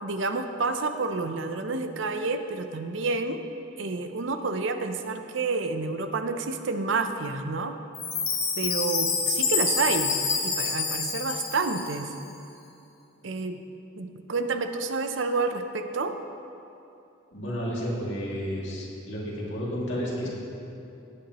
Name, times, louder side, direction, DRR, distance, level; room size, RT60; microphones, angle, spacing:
voice 1, 0.0-3.4 3.8-7.8 8.6-10.1 10.4-12.1 13.2-13.6 14.0-16.2, right 3 dB, 70° right, 8 dB, 0.6 m, -29 dB
Chime, 7.9-12.2, left 5 dB, 85° left, 1.5 m, -27 dB
voice 2, 17.3-20.3, equal, 65° left, -5 dB, 2.4 m, -31 dB
17.0 x 8.6 x 3.0 m, 2.8 s
head